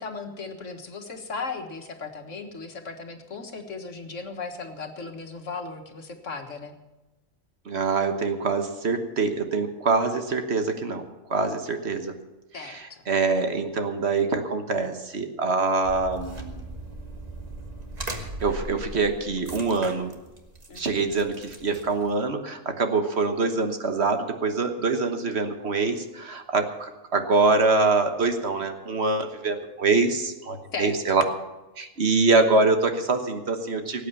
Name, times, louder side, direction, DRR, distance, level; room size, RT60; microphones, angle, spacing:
voice 1, 0.0-6.7 12.5-12.8 20.7-21.1 30.7-31.2, left 4 dB, 70° left, 5 dB, 1.9 m, -36 dB
voice 2, 7.6-11.0 11.3-12.1 12.6-16.6 18.0-20.1 20.7-31.2 31.8-34.1, right 3 dB, 55° right, 6 dB, 1.5 m, -24 dB
sound 1, 15.8-22.2, right 2 dB, 30° right, 1.6 m, -39 dB
18.0 x 8.5 x 7.0 m, 1.1 s
omnidirectional pair, 1.3 m